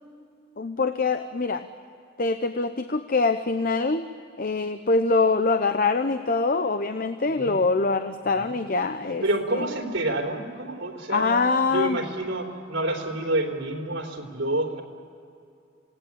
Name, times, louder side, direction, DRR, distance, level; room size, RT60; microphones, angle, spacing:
voice 1, 0.6-1.7 2.2-4.0 4.4-9.2 9.5-9.7 11.1-12.0, left 3 dB, 50° left, 9 dB, 0.8 m, -24 dB
voice 2, 7.3-7.6 8.3-8.6 9.2-11.4 11.7-14.8, right 1 dB, 85° right, 2 dB, 3.7 m, -28 dB
27.5 x 18.0 x 8.7 m, 2.5 s
head